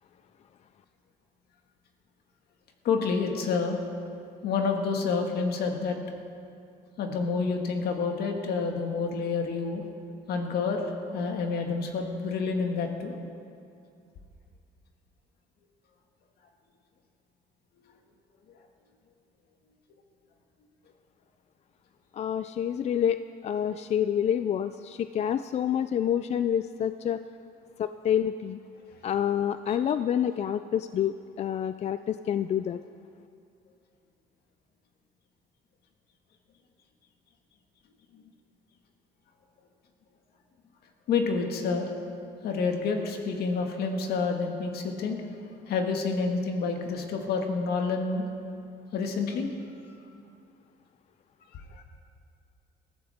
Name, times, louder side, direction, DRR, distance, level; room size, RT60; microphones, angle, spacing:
voice 1, 2.9-3.8 4.4-6.0 7.0-9.8 10.3-10.8 11.1-13.1 41.1-41.9 42.4-45.3 45.7-48.3 48.9-49.5, left 4 dB, 70° left, 3 dB, 1.8 m, -28 dB
voice 2, 22.2-23.2 23.4-27.2 27.8-28.6 29.0-32.8, left 9 dB, 40° left, 11 dB, 0.4 m, -28 dB
20.5 x 14.0 x 3.5 m, 2.5 s
cardioid pair, 110°, 17 cm